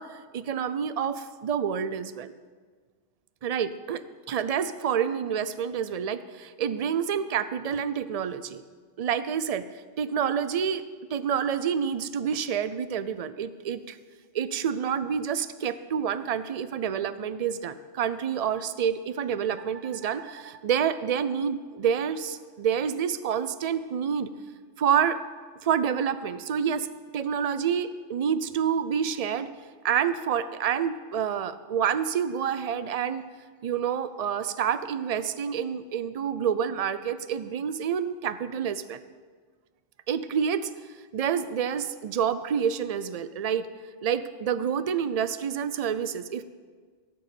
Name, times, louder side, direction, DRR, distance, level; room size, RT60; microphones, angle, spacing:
voice 1, 0.0-2.3 3.4-8.6 9.0-9.7 10.0-10.8 11.1-14.0 14.3-24.3 24.8-25.2 25.6-26.9 27.1-29.5 29.8-33.2 33.6-39.0 40.1-40.7 41.1-43.7 44.0-46.4, right 8 dB, 70° right, 13 dB, 0.3 m, -28 dB
16.0 x 5.5 x 8.3 m, 1.6 s
omnidirectional pair, 1.3 m